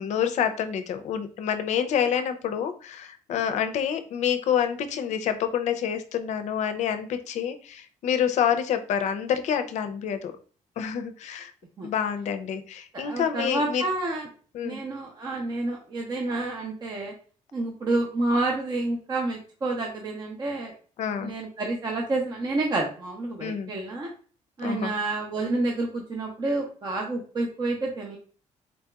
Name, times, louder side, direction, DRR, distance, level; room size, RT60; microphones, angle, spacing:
voice 1, 0.0-10.3 10.8-11.5 11.8-13.8 14.5-14.8 21.0-21.3 23.4-23.7 24.6-24.9, left 8 dB, 65° left, 9 dB, 0.5 m, -27 dB
voice 2, 12.9-14.2 14.6-17.1 17.5-20.7 21.2-24.1 24.6-28.2, right 2 dB, 30° right, 0 dB, 0.6 m, -29 dB
4.0 x 2.8 x 2.3 m, 0.41 s
cardioid pair, 120°, 13 cm